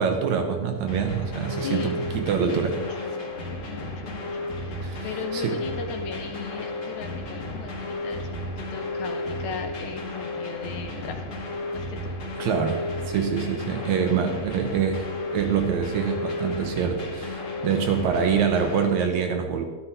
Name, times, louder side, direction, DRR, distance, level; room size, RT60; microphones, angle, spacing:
voice 1, 0.0-2.8 4.8-5.6 12.4-15.0 15.3-19.7, right 7 dB, 70° right, 5 dB, 2.0 m, -25 dB
sound 1, 0.9-18.9, left 2 dB, 45° left, 2.5 m, -33 dB
voice 2, 1.5-2.0 2.4-3.3 3.7-11.2 11.7-12.2, left 8 dB, 75° left, 5 dB, 1.9 m, -38 dB
12.0 x 11.5 x 4.1 m, 1.4 s
omnidirectional pair, 3.9 m